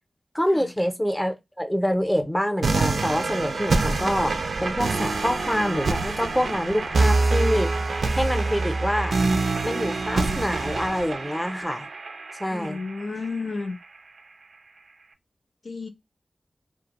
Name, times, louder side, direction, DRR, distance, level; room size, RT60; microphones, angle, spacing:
voice 1, 0.3-7.7 8.2-9.1 9.6-11.9 12.4-12.8, equal, 5° left, 0.5 m, -26 dB
sound 1, 2.6-13.6, right 3 dB, 90° right, 0.4 m, -25 dB
voice 2, 12.5-13.8 15.6-15.9, left 3 dB, 85° left, 0.6 m, -32 dB
2.4 x 2.1 x 2.8 m
wide cardioid pair, 70°, 0 cm